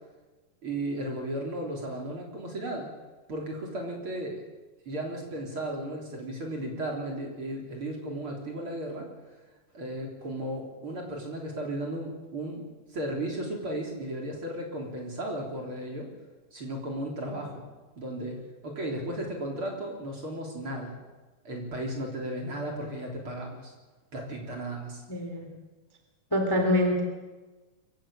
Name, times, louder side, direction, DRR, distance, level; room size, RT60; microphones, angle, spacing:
voice 1, 0.6-2.9 3.3-4.4 4.9-9.1 9.7-12.6 12.9-16.1 16.5-17.7 18.0-18.4 18.6-21.0 21.4-23.7 24.1-25.0, right 1 dB, 35° right, 0 dB, 4.1 m, -35 dB
voice 2, 25.1-25.5 26.3-27.0, left 1 dB, 5° left, 3 dB, 2.8 m, -25 dB
23.5 x 16.5 x 8.7 m, 1.2 s
omnidirectional pair, 4.0 m